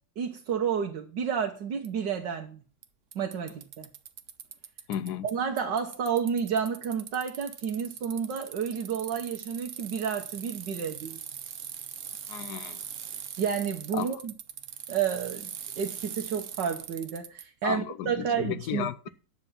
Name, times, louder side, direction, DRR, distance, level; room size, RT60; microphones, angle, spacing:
voice 1, 0.2-2.6 3.2-3.9 5.2-11.2 13.4-14.3 14.9-19.1, right 7 dB, 90° right, 1.8 m, -31 dB
Bicycle, 1.8-1.9 2.8-2.9 3.1-5.3 5.6-17.4, right 8 dB, 55° right, 1.1 m, -41 dB
voice 2, 4.9-5.3 12.3-12.8 13.9-14.2 17.6-19.1, left 11 dB, 75° left, 1.2 m, -34 dB
10.0 x 7.1 x 5.7 m
omnidirectional pair, 1.8 m